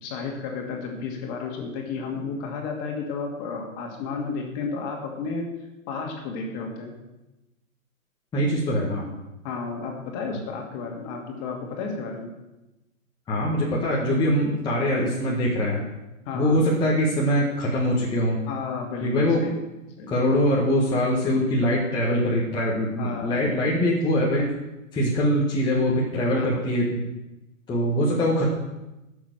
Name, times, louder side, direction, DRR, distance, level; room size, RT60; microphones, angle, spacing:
voice 1, 0.0-5.5 5.9-6.9 9.4-12.3 16.3-16.6 18.5-19.5 20.0-20.1 23.0-23.4 26.3-26.5, left 4 dB, 30° left, 1 dB, 2.4 m, -32 dB
voice 2, 8.3-9.0 13.3-15.8 16.3-18.4 19.0-19.4 20.1-24.5 24.9-27.0 27.7-28.5, equal, 10° left, -5 dB, 1.5 m, -23 dB
11.5 x 7.0 x 6.7 m, 1.0 s
hypercardioid pair, 140°, 43 cm